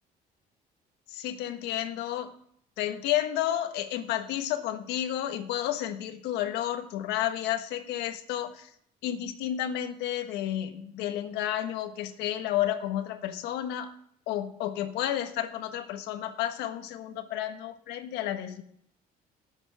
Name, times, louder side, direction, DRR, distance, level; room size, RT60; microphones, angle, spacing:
voice 1, 1.1-2.3 2.8-8.7 9.0-13.9 14.3-18.6, left 12 dB, 90° left, 7 dB, 1.5 m, -31 dB
20.5 x 8.1 x 3.6 m, 0.66 s
cardioid pair, 110°, 17 cm